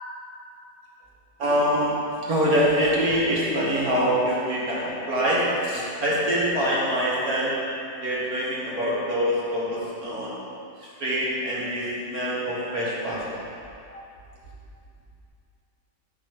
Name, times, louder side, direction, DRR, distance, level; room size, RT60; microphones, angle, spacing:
voice 1, 1.4-1.9 2.3-7.5 8.0-10.3 10.8-13.4, equal, 60° right, -7 dB, 2.3 m, -24 dB
9.4 x 4.6 x 6.6 m, 2.5 s
omnidirectional pair, 1.8 m